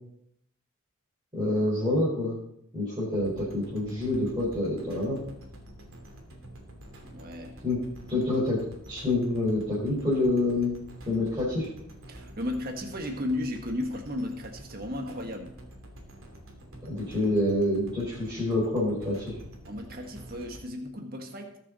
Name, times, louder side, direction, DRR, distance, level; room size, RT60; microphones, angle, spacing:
voice 1, 1.3-2.4 2.7-5.2 7.6-7.8 8.1-8.6 8.9-10.7 11.0-11.7 16.9-19.3, left 1 dB, 20° right, -10 dB, 4.9 m, -27 dB
sound 1, 3.1-20.6, equal, 80° right, 3.0 m, -47 dB
voice 2, 7.0-7.6 12.1-15.5 19.6-21.6, left 1 dB, 45° right, 3 dB, 1.6 m, -34 dB
20.5 x 6.9 x 4.1 m, 0.75 s
head